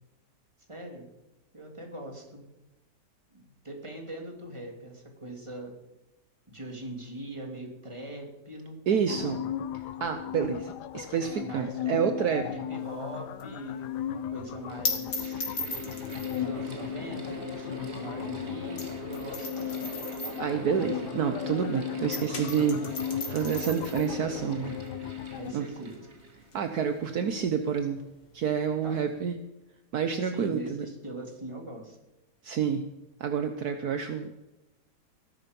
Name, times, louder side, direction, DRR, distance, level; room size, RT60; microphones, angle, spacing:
voice 1, 0.7-1.1 1.5-2.4 3.3-5.7 6.5-9.5 11.4-15.5 16.2-20.0 24.5-24.8 25.3-26.0 28.8-29.0 30.2-32.0, right 1 dB, 15° right, 1 dB, 3.1 m, -42 dB
voice 2, 8.9-9.4 10.0-12.5 20.4-22.8 23.3-24.7 25.5-25.6 26.5-28.0 28.3-29.4 29.9-30.8 32.4-32.9 33.2-34.3, right 7 dB, 65° right, 8 dB, 1.4 m, -28 dB
sound 1, 9.1-25.5, left 11 dB, 75° left, 1.3 m, -36 dB
sound 2, 12.8-21.7 22.0-29.2, left 4 dB, 90° left, 2.9 m, -39 dB
Mechanical fan, 14.3-27.0, right 2 dB, 40° right, 2.1 m, -43 dB
19.0 x 11.5 x 5.4 m, 1.0 s
omnidirectional pair, 1.8 m